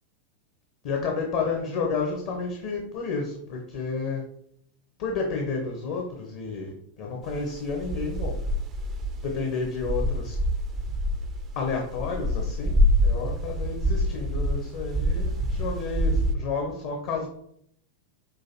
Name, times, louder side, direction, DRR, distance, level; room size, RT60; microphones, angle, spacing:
voice 1, 0.8-4.2 5.0-8.4 9.2-10.4 11.6-17.3, left 4 dB, 45° left, 1 dB, 0.8 m, -31 dB
sound 1, 7.3-16.4, equal, 30° right, 0.4 m, -26 dB
6.1 x 2.5 x 2.8 m, 0.69 s
figure-of-eight pair, 90°, 0 cm